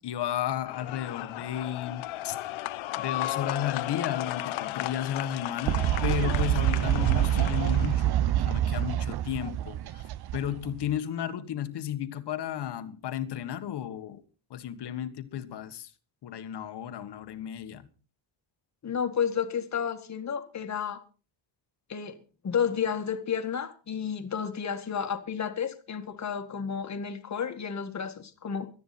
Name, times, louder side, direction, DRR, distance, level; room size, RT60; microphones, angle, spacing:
voice 1, 0.0-2.6 3.0-14.2 14.5-15.9 16.2-17.9, left 10 dB, 60° left, 1.6 m, -34 dB
sound 1, 0.7-8.0, left 15 dB, 90° left, 1.0 m, -35 dB
Fowl, 5.7-10.9, right 12 dB, 55° right, 0.7 m, -26 dB
voice 2, 18.8-21.0 21.9-22.2 22.4-28.7, left 7 dB, 35° left, 1.9 m, -31 dB
18.0 x 12.5 x 4.3 m
cardioid pair, 145°, 46 cm